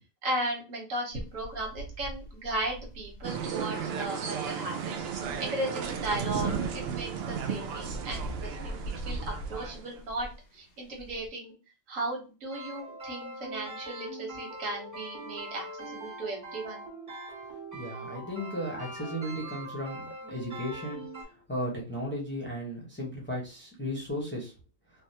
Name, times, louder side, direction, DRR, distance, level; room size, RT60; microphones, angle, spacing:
voice 1, 0.2-5.1 5.4-9.2 9.5-10.3 10.5-11.5 11.9-16.8, right 1 dB, 85° right, 0 dB, 1.5 m, -36 dB
sound 1, 1.1-11.3, right 1 dB, 65° left, 0.9 m, -41 dB
sound 2, 3.2-10.0, right 7 dB, 65° right, 0.7 m, -34 dB
sound 3, 12.5-21.2, right 2 dB, 45° right, 1.2 m, -42 dB
voice 2, 17.7-24.5, equal, 10° left, -3 dB, 0.7 m, -35 dB
3.3 x 2.2 x 2.7 m, 0.32 s
omnidirectional pair, 1.3 m